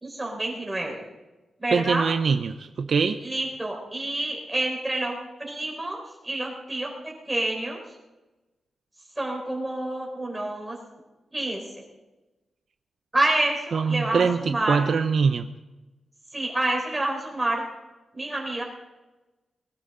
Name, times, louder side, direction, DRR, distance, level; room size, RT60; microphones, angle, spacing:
voice 1, 0.0-1.0 1.6-2.1 3.2-7.8 9.2-10.8 11.3-11.6 13.1-14.8 16.3-17.6 18.1-18.6, right 2 dB, 10° right, -1 dB, 4.6 m, -28 dB
voice 2, 1.7-3.2 13.7-15.5, right 5 dB, 60° right, 8 dB, 0.7 m, -23 dB
21.0 x 16.5 x 3.9 m, 1.1 s
wide cardioid pair, 135°, 0 cm